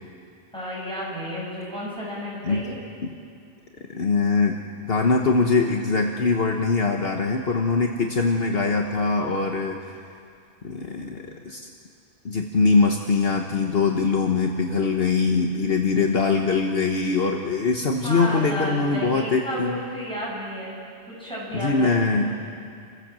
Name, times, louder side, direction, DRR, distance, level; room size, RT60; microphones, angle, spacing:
voice 1, 0.5-2.8 18.0-20.8 21.1-22.3, equal, 5° left, -6 dB, 7.9 m, -32 dB
voice 2, 3.9-4.6 4.9-9.8 10.6-11.6 12.2-19.8 21.5-22.4, left 4 dB, 60° left, 2 dB, 1.4 m, -22 dB
28.5 x 15.5 x 7.5 m, 2.4 s
omnidirectional pair, 1.1 m